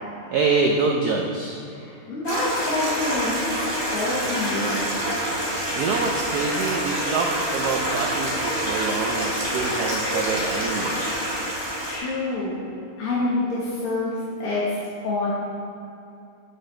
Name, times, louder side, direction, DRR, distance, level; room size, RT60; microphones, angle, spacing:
voice 1, 0.3-1.6 5.7-10.9, right 4 dB, 85° right, 0 dB, 0.8 m, -25 dB
voice 2, 1.7-3.6 3.9-4.8 11.8-12.6 13.0-14.8 15.0-15.3, left 2 dB, 85° left, -8 dB, 2.3 m, -27 dB
Stream, 2.2-12.0, equal, 20° right, 1.5 m, -27 dB
8.3 x 7.7 x 3.2 m, 2.6 s
omnidirectional pair, 2.4 m